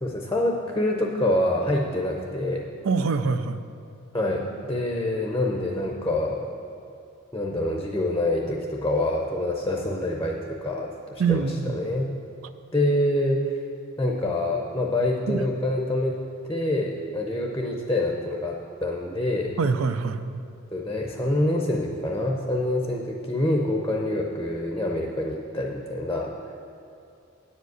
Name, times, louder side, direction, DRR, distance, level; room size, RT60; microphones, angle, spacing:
voice 1, 0.0-2.7 4.1-6.5 7.3-11.5 11.7-12.2 12.7-13.5 14.0-16.2 16.5-19.6 20.7-26.5, left 1 dB, 15° left, 0 dB, 0.6 m, -26 dB
voice 2, 2.8-3.6 11.2-11.7 15.3-15.4 19.6-20.4, right 5 dB, 75° right, 11 dB, 0.5 m, -24 dB
9.9 x 5.1 x 8.0 m, 2.5 s
head